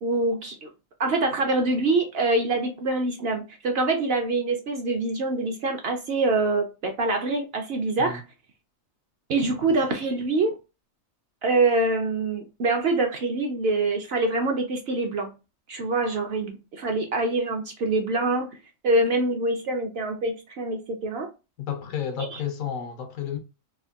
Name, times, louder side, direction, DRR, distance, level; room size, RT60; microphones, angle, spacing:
voice 1, 0.0-0.7 1.0-8.2 9.3-10.6 11.4-15.3 15.7-18.5 18.8-21.3 22.2-22.4, right 2 dB, 60° right, 0.7 m, -25 dB
voice 2, 21.6-23.4, left 9 dB, 85° left, 1.1 m, -31 dB
3.4 x 2.1 x 2.3 m
omnidirectional pair, 1.4 m